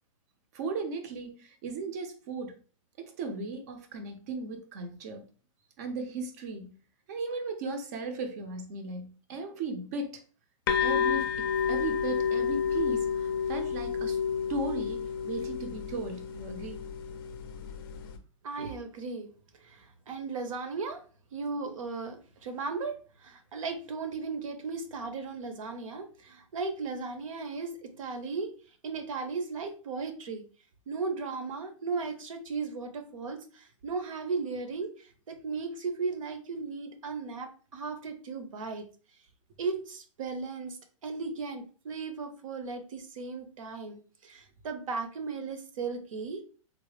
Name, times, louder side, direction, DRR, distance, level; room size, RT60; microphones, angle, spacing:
voice 1, 0.5-2.6 3.0-5.2 5.8-6.7 7.1-10.2 10.8-14.2 14.5-16.8, right 3 dB, 30° right, 0.5 m, -36 dB
sound 1, 10.7-18.2, left 7 dB, 40° left, 0.5 m, -30 dB
voice 2, 18.4-19.3 19.6-21.0 21.3-28.5 28.8-30.4 30.9-38.9 39.6-46.4, right 4 dB, 70° right, 0.8 m, -36 dB
3.8 x 2.0 x 3.2 m
hypercardioid pair, 170°, 17 cm